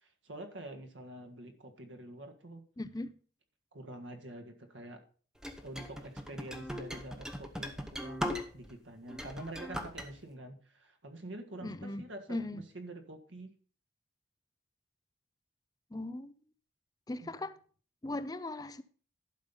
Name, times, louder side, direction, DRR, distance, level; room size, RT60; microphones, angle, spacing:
voice 1, 0.0-2.6 3.7-5.0 5.6-13.5 17.2-17.3, right 1 dB, 85° right, 1.7 m, -47 dB
voice 2, 2.8-3.1 11.6-12.7 15.9-16.3 17.1-17.5 18.0-18.8, left 2 dB, 20° left, 0.4 m, -38 dB
sound 1, 5.4-8.7 9.1-10.1, equal, 5° right, 0.8 m, -39 dB
11.5 x 5.3 x 5.6 m
head